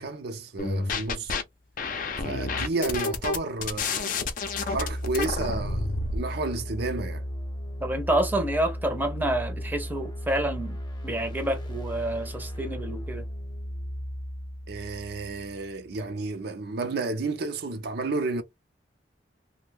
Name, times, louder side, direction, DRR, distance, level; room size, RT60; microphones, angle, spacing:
voice 1, 0.0-1.3 2.2-4.2 4.6-7.2 14.7-18.4, right 3 dB, 65° right, 0.5 m, -31 dB
sound 1, 0.6-1.4 1.8-6.2, left 3 dB, 50° left, 0.5 m, -29 dB
sound 2, 4.3-16.0, equal, 25° left, 0.8 m, -36 dB
voice 2, 7.8-13.2, right 1 dB, 10° right, 0.6 m, -28 dB
2.6 x 2.1 x 3.3 m
head